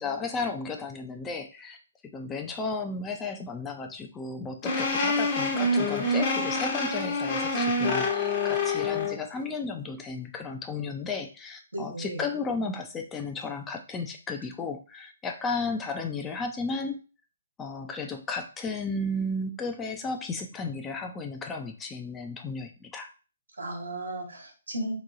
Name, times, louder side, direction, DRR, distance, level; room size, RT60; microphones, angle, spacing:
voice 1, 0.0-1.8 2.1-17.0 17.6-23.1, left 3 dB, 15° left, 4 dB, 0.4 m, -34 dB
sound 1, 4.6-9.2, left 2 dB, 35° left, 0.8 m, -26 dB
voice 2, 11.7-12.2 23.6-24.9, right 1 dB, 85° right, 1 dB, 1.1 m, -35 dB
3.0 x 2.2 x 3.8 m, 0.34 s
figure-of-eight pair, 135°, 0 cm